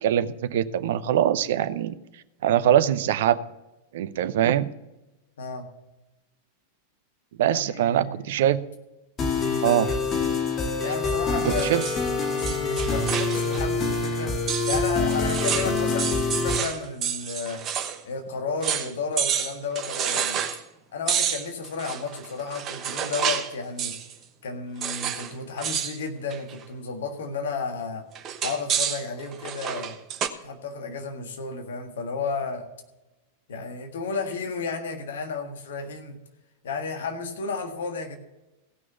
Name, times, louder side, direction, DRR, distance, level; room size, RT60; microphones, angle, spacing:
voice 1, 0.0-1.9 2.4-3.4 3.9-4.7 7.4-8.6 9.6-9.9 11.4-11.8, right 11 dB, 55° right, 14 dB, 0.6 m, -22 dB
voice 2, 7.4-8.3 9.3-9.6 10.8-14.3 14.6-17.6 18.0-20.4 20.9-24.0 24.4-28.0 28.4-30.0 30.4-32.7 33.5-36.2 36.6-38.2, left 4 dB, 60° left, 4 dB, 1.7 m, -32 dB
sound 1, 9.2-16.6, left 3 dB, 25° left, 2.0 m, -26 dB
sound 2, 11.4-13.7 13.9-14.0 14.5-18.0 18.3-18.4 18.6-18.9 19.2-20.6 21.1-23.5 23.8-24.1 24.8-25.3 25.6-26.0 26.3-26.6 28.2-30.3, right 8 dB, 30° right, 1.0 m, -29 dB
16.0 x 6.1 x 7.0 m, 0.99 s
figure-of-eight pair, 90°, 0 cm